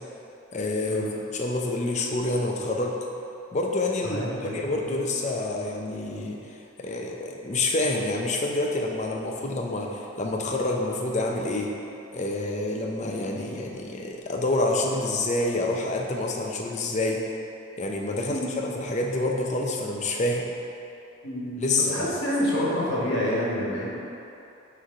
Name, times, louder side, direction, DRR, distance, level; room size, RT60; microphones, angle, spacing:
voice 1, 0.5-1.0 1.3-3.0 3.5-6.4 6.8-11.7 12.1-17.3 17.8-20.4 21.6-22.1, left 2 dB, 35° left, 0 dB, 0.5 m, -27 dB
voice 2, 4.0-5.0 18.3-18.7 21.2-23.9, left 1 dB, 60° left, -6 dB, 1.3 m, -28 dB
6.2 x 3.2 x 5.3 m, 2.8 s
head